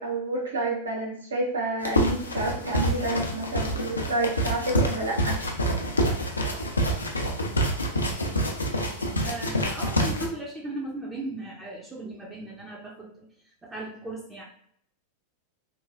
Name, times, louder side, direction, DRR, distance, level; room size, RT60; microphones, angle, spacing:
voice 1, 0.0-5.4, right 2 dB, 70° right, -2 dB, 0.8 m, -29 dB
sound 1, 1.8-10.3, equal, 80° left, 0.4 m, -27 dB
voice 2, 9.2-14.4, right 2 dB, 10° right, -4 dB, 0.5 m, -37 dB
3.0 x 2.2 x 2.4 m, 0.65 s
figure-of-eight pair, 90°, 0 cm